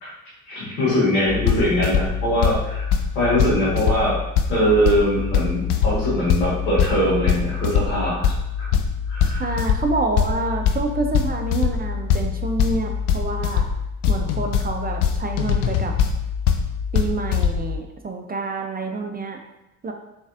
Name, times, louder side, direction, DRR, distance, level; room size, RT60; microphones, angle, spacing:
voice 1, 0.5-2.9 3.1-4.2 4.5-8.3 8.6-8.7 9.1-9.5, equal, 90° left, -7 dB, 1.4 m, -22 dB
sound 1, 1.3-17.8, left 7 dB, 70° left, 0.5 m, -23 dB
voice 2, 9.2-13.7 14.1-15.9 16.9-19.4 19.8-19.9, right 3 dB, 20° right, 3 dB, 0.4 m, -27 dB
3.9 x 3.3 x 2.5 m, 0.91 s
hypercardioid pair, 50°, 43 cm